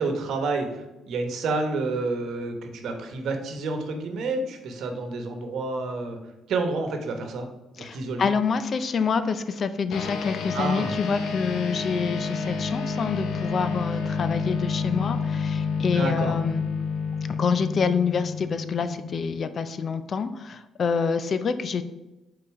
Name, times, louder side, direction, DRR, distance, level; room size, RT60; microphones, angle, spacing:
voice 1, 0.0-6.2 6.5-7.5 7.8-8.3 10.5-10.9 15.9-16.3, right 3 dB, 75° right, 5 dB, 1.0 m, -29 dB
voice 2, 7.8-16.6 17.3-21.8, left 5 dB, 50° left, 11 dB, 0.5 m, -27 dB
sound 1, 9.9-19.6, left 5 dB, 80° left, 0.7 m, -29 dB
5.4 x 4.0 x 4.7 m, 1.0 s
cardioid pair, 90°, 0 cm